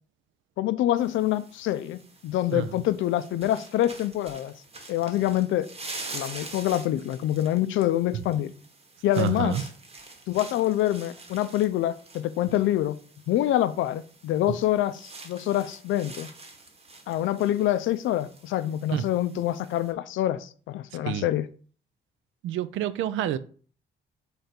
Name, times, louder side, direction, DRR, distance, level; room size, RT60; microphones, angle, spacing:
voice 1, 0.6-4.5 4.9-5.7 6.1-8.5 9.0-9.7 10.3-13.0 13.3-16.3 17.1-21.5, left 13 dB, 75° left, 0.4 m, -26 dB
sound 1, 1.0-19.9, right 3 dB, 30° right, 1.0 m, -46 dB
voice 2, 9.2-9.6 18.9-19.0 21.1-21.3 22.4-23.4, right 11 dB, 80° right, 0.4 m, -28 dB
3.7 x 3.4 x 4.2 m
cardioid pair, 90°, 20 cm